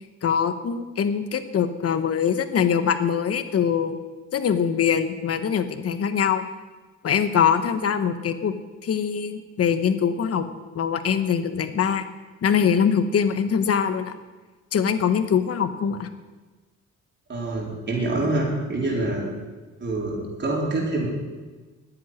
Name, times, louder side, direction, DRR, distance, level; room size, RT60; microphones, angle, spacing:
voice 1, 0.2-4.0 4.3-6.4 7.0-8.5 8.8-10.5 10.7-12.0 12.4-14.1 14.7-16.1, left 7 dB, 50° left, 9 dB, 1.2 m, -23 dB
voice 2, 17.3-19.2 19.8-21.1, right 2 dB, 35° right, -3 dB, 4.3 m, -26 dB
10.5 x 8.0 x 9.7 m, 1.3 s
cardioid pair, 90°, 30 cm